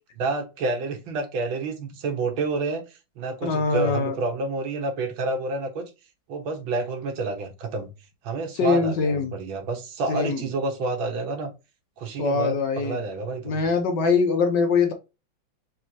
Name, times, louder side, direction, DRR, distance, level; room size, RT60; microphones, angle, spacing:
voice 1, 0.2-5.9 6.3-7.9 8.2-11.5 12.0-13.6, right 3 dB, 85° right, 1.9 m, -29 dB
voice 2, 3.4-4.1 8.6-9.3 10.1-10.4 12.2-13.0 13.4-14.9, left 5 dB, 65° left, 1.5 m, -23 dB
6.2 x 2.9 x 2.8 m
omnidirectional pair, 2.1 m